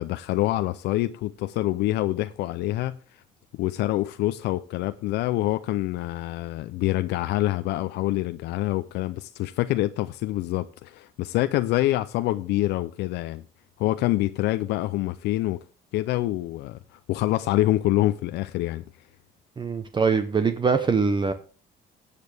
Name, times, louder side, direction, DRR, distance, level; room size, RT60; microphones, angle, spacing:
voice 1, 0.0-3.0 3.6-13.4 13.8-15.6 15.9-18.8, left 16 dB, 80° left, 0.5 m, -26 dB
voice 2, 19.6-21.3, right 5 dB, 30° right, 0.9 m, -23 dB
15.0 x 8.4 x 3.4 m
cardioid pair, 110°, 17 cm